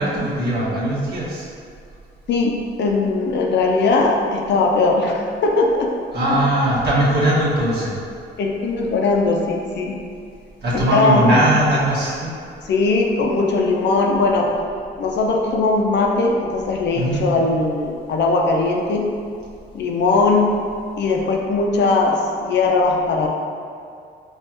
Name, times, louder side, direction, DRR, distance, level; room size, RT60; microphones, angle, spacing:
voice 1, 0.0-1.4 6.1-8.0 10.6-12.3 16.9-17.3, right 1 dB, 55° right, -8 dB, 1.5 m, -19 dB
voice 2, 2.8-5.9 6.3-6.4 8.4-9.9 10.7-11.5 12.7-14.5 15.0-19.0 19.7-20.5 21.0-23.3, left 3 dB, 60° left, 0 dB, 0.6 m, -19 dB
5.4 x 2.5 x 2.9 m, 2.4 s
cardioid pair, 90°, 20 cm